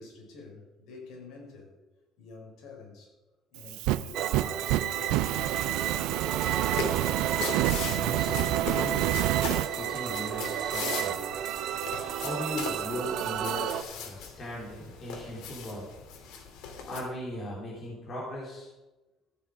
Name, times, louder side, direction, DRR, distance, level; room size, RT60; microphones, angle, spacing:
voice 1, 0.0-1.7 2.2-3.1 3.5-6.5 7.0-7.5, left 3 dB, 65° left, -1 dB, 5.5 m, -48 dB
Fire, 3.6-9.7, right 16 dB, 90° right, 0.4 m, -29 dB
sound 1, 4.1-13.8, right 10 dB, 60° right, 0.9 m, -32 dB
sound 2, 6.4-17.0, left 6 dB, 85° left, 2.6 m, -40 dB
voice 2, 7.8-9.2 9.7-11.2 12.2-15.9 16.9-18.7, left 1 dB, 30° left, -5 dB, 3.7 m, -38 dB
14.5 x 10.0 x 5.1 m, 1.1 s
cardioid pair, 170°, 0 cm